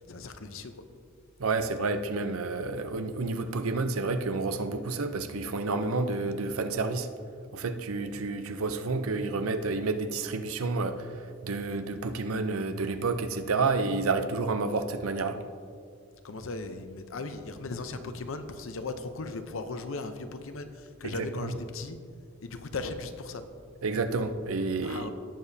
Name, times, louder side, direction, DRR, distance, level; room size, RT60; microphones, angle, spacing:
voice 1, 0.1-0.7 16.2-22.0 22.4-23.4 24.8-25.1, left 3 dB, 70° left, 9 dB, 0.7 m, -37 dB
voice 2, 1.4-7.1 7.5-15.4 21.0-21.5 23.8-25.1, right 3 dB, 80° right, 9 dB, 0.6 m, -30 dB
17.5 x 7.1 x 2.7 m, 2.2 s
head